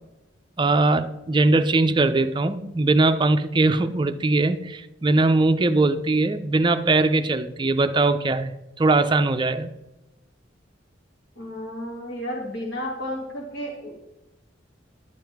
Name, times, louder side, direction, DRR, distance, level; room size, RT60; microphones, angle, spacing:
voice 1, 0.6-8.5 8.8-9.7, right 2 dB, 25° right, 10 dB, 0.5 m, -21 dB
voice 2, 11.4-13.9, equal, 60° left, -3 dB, 1.7 m, -32 dB
11.0 x 7.5 x 3.5 m, 1.0 s
head